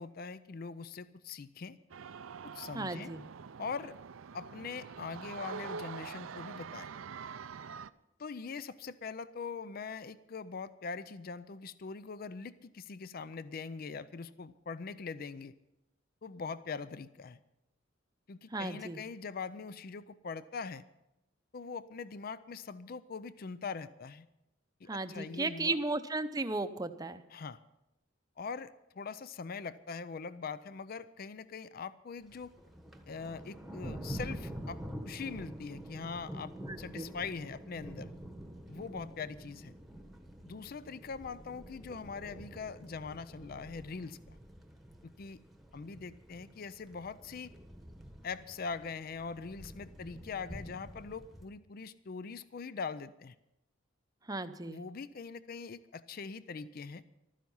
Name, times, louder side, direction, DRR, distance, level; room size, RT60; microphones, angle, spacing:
voice 1, 0.0-1.8 2.4-3.1 3.6-3.9 4.3-6.9 8.2-15.5 16.2-17.4 18.3-20.8 21.5-24.3 24.8-25.8 27.3-27.6 28.4-32.5 33.1-34.8 35.1-38.1 38.7-39.7 40.4-44.4 45.0-45.4 45.7-47.5 48.2-53.4 54.6-57.0, left 5 dB, 45° left, 15 dB, 0.4 m, -42 dB
sound 1, 1.9-7.9, right 6 dB, 90° right, 0.5 m, -45 dB
voice 2, 2.7-3.2 18.5-19.0 24.9-27.2 36.7-37.1 54.3-54.8, right 3 dB, 20° right, 9 dB, 0.7 m, -35 dB
Thunder, 32.2-51.5, right 1 dB, ahead, 1.2 m, -47 dB
15.0 x 13.0 x 5.5 m, 0.91 s
head